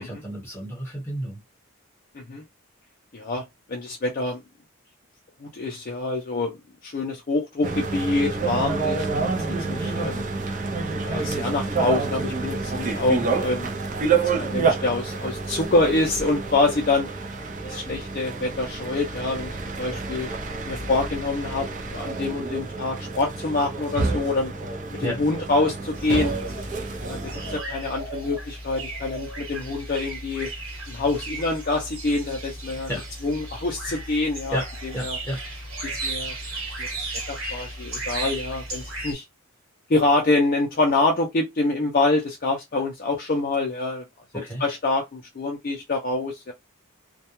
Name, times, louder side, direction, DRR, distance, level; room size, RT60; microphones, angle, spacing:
voice 1, 0.0-1.4 13.2-13.3 25.0-25.2 32.8-33.1 34.5-35.4 42.7-42.8 44.3-44.6, equal, 10° left, 1.1 m, -31 dB
voice 2, 3.1-4.4 5.4-6.5 6.8-10.3 11.0-13.7 14.3-17.1 17.6-20.3 20.7-24.5 25.0-26.3 27.1-30.5 30.9-32.9 33.2-34.6 35.0-35.2 35.8-36.3 36.8-39.2 39.9-44.0 44.6-46.5, left 2 dB, 45° left, 0.5 m, -26 dB
sound 1, 7.6-27.6, right 4 dB, 40° right, 0.5 m, -28 dB
sound 2, 25.9-39.1, right 2 dB, 70° right, 1.1 m, -35 dB
2.2 x 2.1 x 2.8 m
head